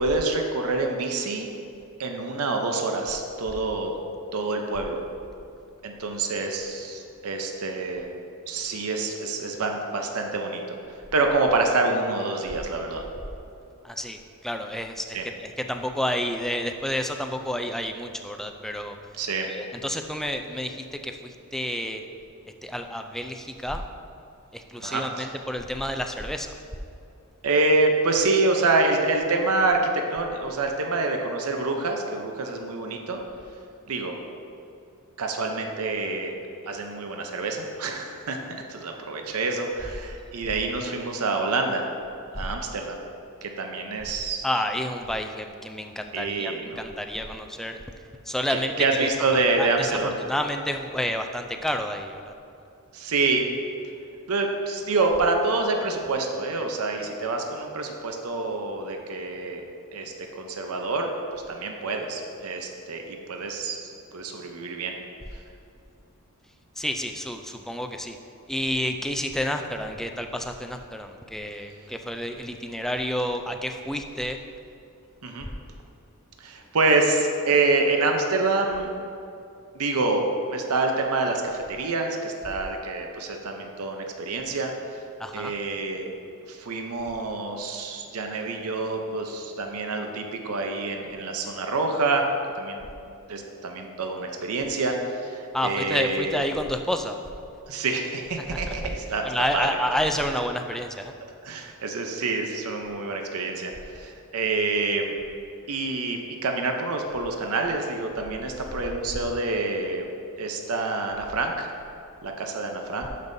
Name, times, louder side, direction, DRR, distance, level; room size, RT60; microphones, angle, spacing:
voice 1, 0.0-1.5 2.0-4.0 4.3-5.0 5.8-8.1 8.5-10.8 11.1-13.0 15.1-15.2 19.1-19.5 24.8-25.3 27.4-33.2 33.9-34.1 35.2-36.3 36.7-41.9 42.3-43.0 43.4-44.5 46.1-46.8 48.5-50.1 52.9-53.5 54.3-59.6 59.9-63.8 64.1-64.9 75.2-75.5 76.4-78.9 79.7-80.2 80.5-84.7 85.3-86.1 86.5-92.2 92.6-92.9 93.3-96.4 97.7-99.2 99.5-99.7 101.4-105.1 105.7-110.1 110.4-111.7 112.2-113.1, right 3 dB, 70° right, 3 dB, 0.7 m, -27 dB
voice 2, 13.8-19.0 19.5-22.0 22.6-23.8 24.5-26.6 44.4-47.8 48.3-49.1 49.6-52.3 66.8-68.2 68.5-74.4 85.2-85.5 95.5-97.2 98.5-98.9 99.2-101.1, equal, ahead, 5 dB, 0.3 m, -30 dB
12.0 x 5.4 x 2.7 m, 2.6 s
head